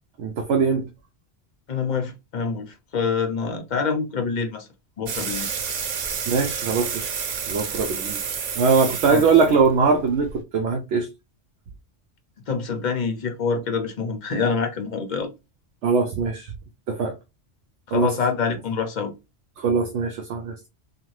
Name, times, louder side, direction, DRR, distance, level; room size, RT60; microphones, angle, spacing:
voice 1, 0.2-0.9 6.3-7.1 7.5-8.2 8.6-11.1 15.8-16.5 16.9-17.2 17.9-18.1 19.6-20.7, right 5 dB, 80° right, 0.9 m, -21 dB
voice 2, 1.7-4.7 5.0-5.5 9.1-9.3 12.5-15.3 17.9-19.1, left 5 dB, 50° left, 0.7 m, -26 dB
sound 1, 5.1-10.4, right 6 dB, 55° right, 0.5 m, -30 dB
2.6 x 2.4 x 3.1 m
omnidirectional pair, 1.2 m